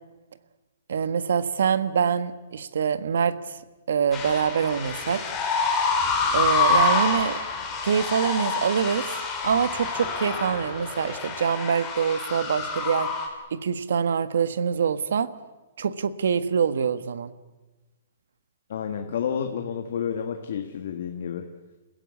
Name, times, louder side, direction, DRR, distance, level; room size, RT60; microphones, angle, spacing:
voice 1, 0.9-3.4 3.9-5.2 6.3-7.4 7.8-9.1 9.4-13.1 13.5-15.3 15.8-17.3, right 7 dB, 65° right, 14 dB, 1.4 m, -25 dB
sound 1, 4.1-13.3, left 4 dB, 10° left, 2.7 m, -27 dB
voice 2, 18.7-21.5, left 7 dB, 50° left, 5 dB, 1.6 m, -30 dB
29.0 x 16.0 x 8.5 m, 1.2 s
hypercardioid pair, 180°, 0 cm